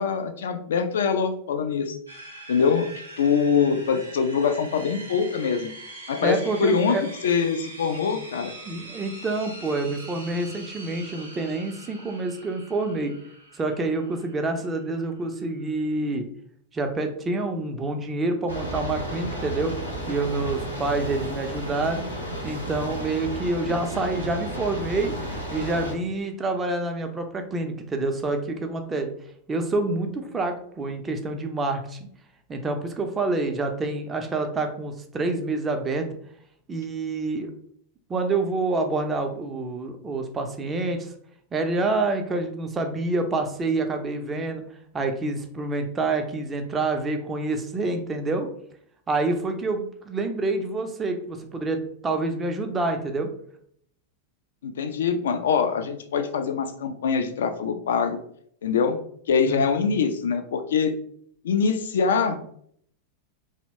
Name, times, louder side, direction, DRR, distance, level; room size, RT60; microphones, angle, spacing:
voice 1, 0.0-2.0 2.5-5.7 6.1-7.0 7.2-8.5 54.6-58.2 58.6-59.0 59.3-60.9 61.4-62.4, left 6 dB, 60° left, 8 dB, 0.3 m, -24 dB
sound 1, 2.1-16.1, right 1 dB, 80° right, 0.6 m, -43 dB
voice 2, 6.2-7.0 8.7-13.1 13.5-16.3 16.7-19.7 20.1-22.1 22.4-29.1 29.5-32.1 32.5-36.1 36.7-37.5 38.1-41.1 41.5-44.6 44.9-48.5 49.1-53.3 59.5-59.9, right 2 dB, 20° right, 5 dB, 0.4 m, -27 dB
sound 2, 18.5-25.9, right 1 dB, 90° left, 0.8 m, -33 dB
2.8 x 2.0 x 2.8 m, 0.65 s
figure-of-eight pair, 90°, 0 cm